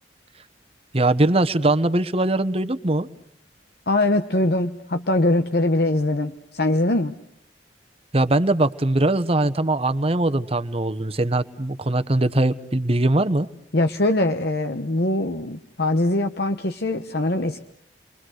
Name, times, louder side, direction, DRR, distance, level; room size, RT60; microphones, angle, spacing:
voice 1, 0.9-3.1 8.1-13.5, right 2 dB, 35° right, 12 dB, 1.1 m, -21 dB
voice 2, 3.9-7.1 13.7-17.6, left 2 dB, 60° left, 7 dB, 1.1 m, -22 dB
30.0 x 23.5 x 6.4 m, 0.72 s
head